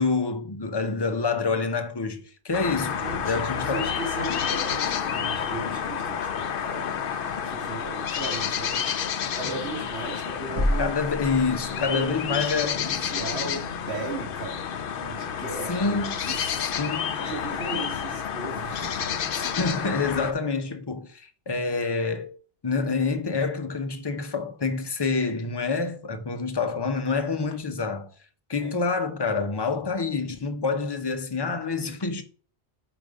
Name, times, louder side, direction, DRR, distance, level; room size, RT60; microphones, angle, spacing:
voice 1, 0.0-3.9 9.4-9.5 10.8-13.0 15.7-16.5 16.8-17.2 18.8-18.9 19.4-22.3 22.6-28.1 28.5-32.2, left 4 dB, 25° left, 0.7 m, -27 dB
sound 1, 2.5-20.3, left 7 dB, 60° left, 0.8 m, -30 dB
voice 2, 3.0-7.0 7.4-10.9 11.8-12.7 13.1-14.6 14.9-16.0 16.3-16.8 17.1-19.4 28.6-28.8, right 2 dB, 75° right, 2.2 m, -37 dB
sound 2, 10.6-12.2, equal, 35° right, 1.2 m, -28 dB
5.1 x 5.0 x 5.1 m
omnidirectional pair, 1.1 m